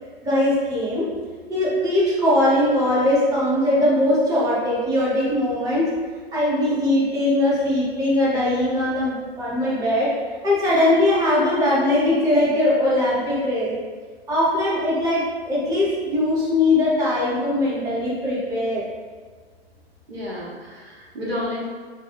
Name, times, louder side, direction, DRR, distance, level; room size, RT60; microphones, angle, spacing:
voice 1, 0.2-1.1 1.5-5.9 6.3-10.1 10.4-13.7 14.3-18.9, left 1 dB, 10° right, -8 dB, 0.9 m, -20 dB
voice 2, 20.1-21.6, left 1 dB, 70° right, -6 dB, 1.4 m, -31 dB
3.4 x 2.2 x 4.1 m, 1.5 s
figure-of-eight pair, 110°, 32 cm